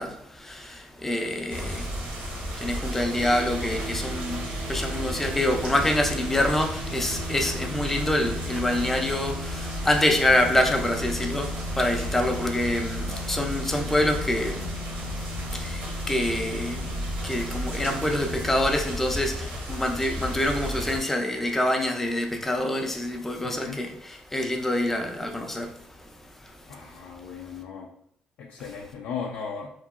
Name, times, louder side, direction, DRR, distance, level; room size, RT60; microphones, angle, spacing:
voice 1, 0.0-15.0 15.3-26.9 28.6-28.7, left 1 dB, 10° left, 0.4 m, -27 dB
sound 1, 1.5-21.0, equal, 85° right, 1.0 m, -33 dB
sound 2, 3.1-18.8, left 1 dB, 60° right, 0.5 m, -39 dB
voice 2, 23.4-23.8 26.7-27.9 28.4-29.7, left 6 dB, 85° left, 0.3 m, -36 dB
2.9 x 2.7 x 2.4 m
cardioid pair, 135°, 3 cm